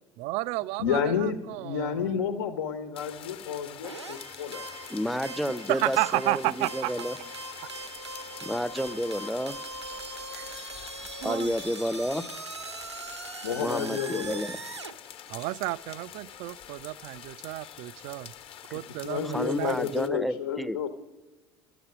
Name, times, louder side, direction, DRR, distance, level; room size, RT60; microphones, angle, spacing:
voice 1, 0.2-2.1 5.7-7.1 10.3-10.9 11.2-11.5 15.3-18.3 18.7-19.8, right 20 dB, 50° right, 0.4 m, -32 dB
voice 2, 0.8-4.7 13.4-14.4 19.0-20.9, left 7 dB, 70° left, 1.2 m, -30 dB
sound 1, 3.0-20.1, left 9 dB, 40° left, 1.2 m, -46 dB
sound 2, 3.8-14.9, right 3 dB, 90° right, 0.8 m, -41 dB
voice 3, 4.9-7.2 8.4-9.6 11.2-12.2 13.6-14.6 19.3-20.8, equal, ahead, 0.6 m, -30 dB
11.0 x 8.0 x 10.0 m
figure-of-eight pair, 65°, 14 cm